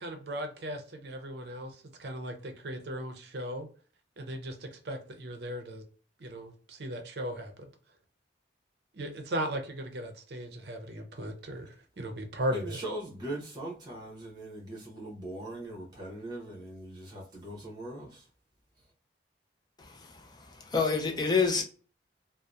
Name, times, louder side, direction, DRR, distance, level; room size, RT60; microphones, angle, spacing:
voice 1, 0.0-3.7 4.2-5.8 6.2-7.7 8.9-12.8, right 1 dB, 60° right, 0.5 m, -37 dB
voice 2, 12.5-18.3, right 1 dB, 25° right, 0.8 m, -40 dB
voice 3, 20.5-21.6, left 5 dB, 25° left, 0.4 m, -26 dB
2.7 x 2.0 x 2.3 m
head